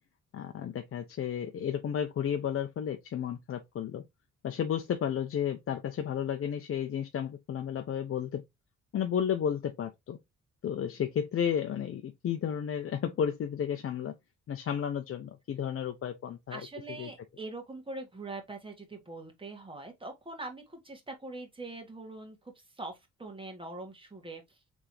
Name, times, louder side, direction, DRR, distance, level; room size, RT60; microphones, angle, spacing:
voice 1, 0.3-4.0 4.4-8.4 8.9-10.2 10.6-14.1 14.5-16.6 16.9-17.1, left 8 dB, 45° left, 0.7 m, -32 dB
voice 2, 16.5-22.4 22.8-24.4, right 2 dB, 15° right, 1.8 m, -42 dB
4.0 x 3.5 x 3.1 m
cardioid pair, 90°, 30 cm